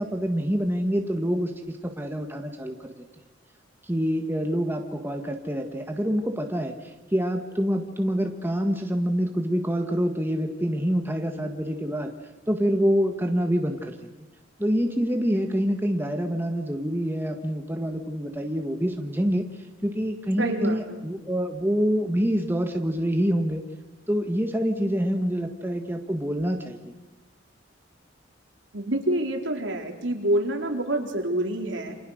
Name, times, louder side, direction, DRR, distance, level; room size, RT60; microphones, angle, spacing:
voice 1, 0.0-2.9 3.9-12.1 12.5-13.9 14.6-19.5 19.8-23.6 24.1-26.9, equal, 10° right, 4 dB, 1.7 m, -26 dB
voice 2, 20.4-21.1 28.7-31.9, right 1 dB, 75° right, 2 dB, 4.1 m, -27 dB
29.0 x 27.5 x 6.6 m, 1.1 s
head